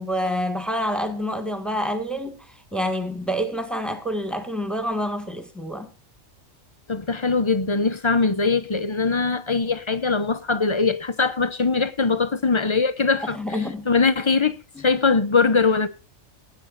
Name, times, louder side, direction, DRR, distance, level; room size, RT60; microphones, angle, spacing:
voice 1, 0.0-5.9 13.2-13.9 14.8-14.9, equal, ahead, 1.8 m, -27 dB
voice 2, 6.9-13.4 13.9-14.6 14.8-15.9, left 4 dB, 25° left, 0.7 m, -21 dB
19.5 x 9.7 x 2.6 m
omnidirectional pair, 1.4 m